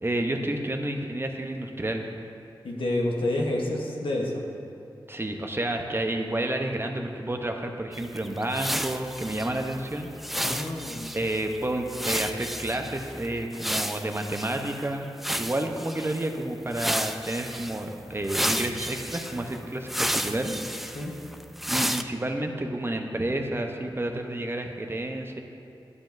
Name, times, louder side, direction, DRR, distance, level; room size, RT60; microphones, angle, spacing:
voice 1, 0.0-2.1 5.1-10.1 11.1-21.0 21.7-25.4, right 1 dB, 25° right, 3 dB, 0.7 m, -30 dB
voice 2, 2.6-4.4 10.3-11.1 20.9-21.1, left 1 dB, 90° left, -1 dB, 1.0 m, -29 dB
sound 1, 7.9-14.8 15.2-16.3 16.7-17.8 18.2-22.0, equal, ahead, 0.3 m, -32 dB
11.0 x 7.3 x 2.6 m, 2.8 s
cardioid pair, 50°, 9 cm